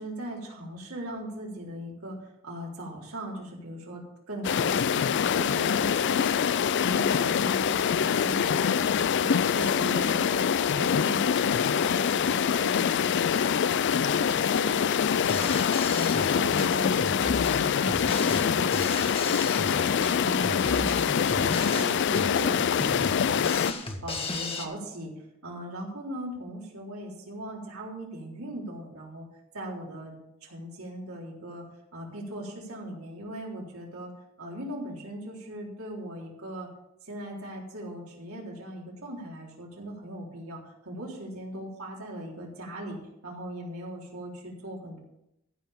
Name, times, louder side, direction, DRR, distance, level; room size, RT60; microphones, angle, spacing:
voice 1, 0.0-2.2 2.4-10.4 10.7-20.9 21.2-23.7 24.0-25.1 25.4-29.3 29.5-30.2 30.4-31.6 31.9-34.1 34.4-36.7 37.1-45.0, right 1 dB, 80° right, -2 dB, 3.7 m, -39 dB
sound 1, 4.4-23.7, left 7 dB, 55° left, 0.4 m, -25 dB
Drum kit, 15.3-24.7, left 2 dB, 25° left, 1.3 m, -35 dB
15.0 x 5.6 x 7.1 m, 0.85 s
head